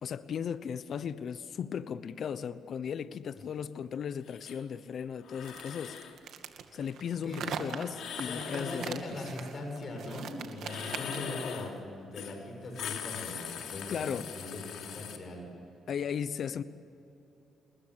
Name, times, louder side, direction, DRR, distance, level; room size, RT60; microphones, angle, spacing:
voice 1, 0.0-6.0 6.7-9.0 13.9-14.3 15.9-16.6, left 7 dB, 60° left, 0.9 m, -36 dB
sound 1, 4.3-4.6 5.2-6.2 7.9-9.0 10.6-11.7 12.1-12.4 12.6-15.2, left 8 dB, 75° left, 3.1 m, -40 dB
sound 2, 5.4-11.3, right 7 dB, 70° right, 2.2 m, -42 dB
voice 2, 8.3-15.5, left 1 dB, 40° left, 7.3 m, -40 dB
29.0 x 21.0 x 8.3 m
cardioid pair, 90°, 0 cm